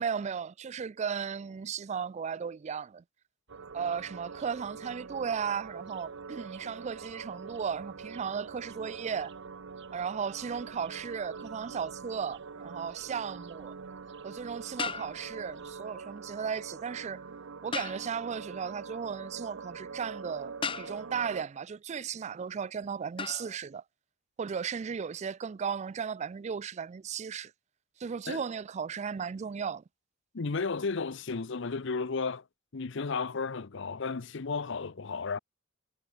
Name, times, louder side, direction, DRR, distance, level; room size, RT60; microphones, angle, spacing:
voice 1, 0.0-3.0 3.7-9.3 9.9-13.7 14.2-17.2 17.6-23.8 24.4-27.5 28.0-29.8, right 6 dB, 35° right, 0.3 m, -35 dB
sound 1, 3.5-15.8, right 4 dB, 65° right, 4.9 m, -61 dB
sound 2, 3.5-21.4, right 5 dB, 85° right, 0.7 m, -44 dB
sound 3, 12.3-12.5 14.8-15.6 17.7-18.3 20.6-21.3 23.2-23.6, left 5 dB, 25° left, 1.0 m, -37 dB
voice 2, 30.3-32.4 32.7-35.4, left 4 dB, 65° left, 0.7 m, -33 dB
head